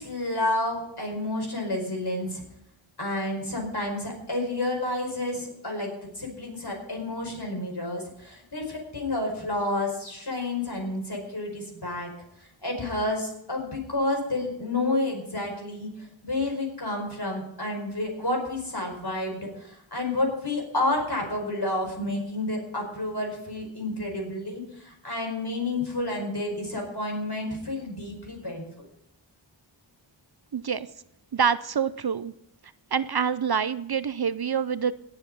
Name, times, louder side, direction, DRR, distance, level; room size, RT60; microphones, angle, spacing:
voice 1, 0.0-2.4 3.0-12.1 12.4-28.7, left 2 dB, 55° left, 1 dB, 5.0 m, -30 dB
voice 2, 30.5-30.9 31.3-32.3 32.9-34.9, right 7 dB, 55° right, 16 dB, 0.6 m, -26 dB
18.0 x 7.2 x 5.4 m, 0.77 s
wide cardioid pair, 45°, 47 cm